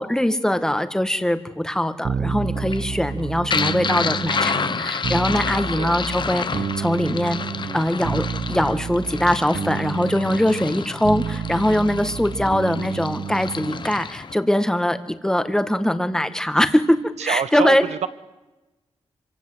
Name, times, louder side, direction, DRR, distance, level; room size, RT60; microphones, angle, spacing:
voice 1, 0.0-7.4 7.7-17.8, left 1 dB, 5° left, 10 dB, 1.9 m, -22 dB
sound 1, 2.0-13.9, right 6 dB, 60° right, 1.0 m, -30 dB
sound 2, 2.6-14.4, left 5 dB, 45° left, 1.1 m, -29 dB
voice 2, 17.2-18.1, right 8 dB, 90° right, 13 dB, 1.3 m, -26 dB
26.0 x 25.0 x 8.2 m, 1.1 s
cardioid pair, 100°, 11 cm